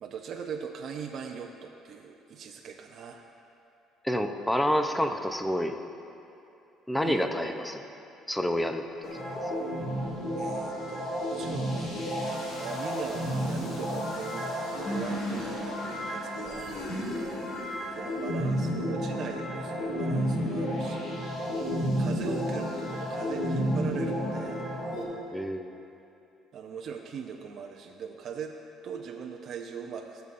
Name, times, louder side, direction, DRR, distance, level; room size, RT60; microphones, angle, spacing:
voice 1, 0.0-3.3 7.0-7.3 10.4-17.1 18.0-21.2 22.0-24.7 26.5-28.6 28.8-30.2, right 6 dB, 55° right, 2 dB, 0.5 m, -40 dB
voice 2, 4.0-5.8 6.9-7.8 8.3-8.8 9.5-9.6 25.3-25.8, equal, 5° left, 6 dB, 0.6 m, -28 dB
sound 1, 9.0-25.0, equal, 65° left, 2.1 m, -31 dB
16.5 x 6.9 x 2.5 m, 2.7 s
cardioid pair, 100°, 0 cm